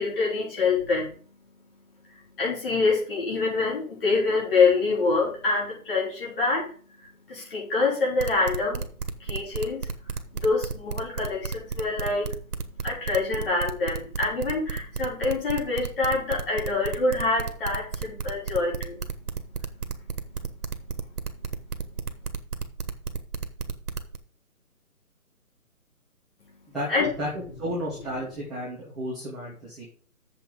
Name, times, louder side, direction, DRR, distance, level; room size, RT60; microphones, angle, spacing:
voice 1, 0.0-8.9 9.2-22.4 26.4-27.1, left 3 dB, 40° left, -4 dB, 5.3 m, -27 dB
sound 1, 8.2-24.2, right 5 dB, 90° right, 1.6 m, -32 dB
voice 2, 26.7-27.3 27.6-29.8, equal, ahead, -15 dB, 1.5 m, -33 dB
7.4 x 5.9 x 7.4 m, 0.44 s
hypercardioid pair, 170°, 44 cm